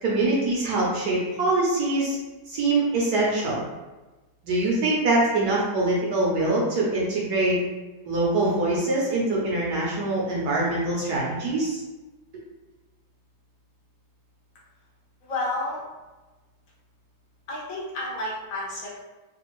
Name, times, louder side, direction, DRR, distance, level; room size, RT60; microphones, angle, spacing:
voice 1, 0.0-2.2 2.5-3.6 4.4-7.6 8.0-11.8, right 2 dB, 65° right, -4 dB, 1.0 m, -24 dB
voice 2, 15.2-15.8 17.5-18.9, left 2 dB, 60° left, -5 dB, 0.9 m, -30 dB
3.3 x 2.3 x 3.0 m, 1.1 s
omnidirectional pair, 2.2 m